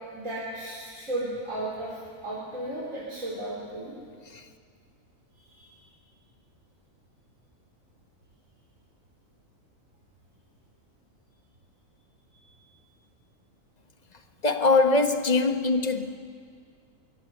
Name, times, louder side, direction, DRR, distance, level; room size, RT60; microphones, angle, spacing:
voice 1, 0.1-4.0 5.5-5.7, right 1 dB, 70° right, 4.8 m, -34 dB
voice 2, 14.4-16.2, left 3 dB, 30° left, 1.4 m, -22 dB
24.5 x 24.0 x 8.1 m
omnidirectional pair, 1.4 m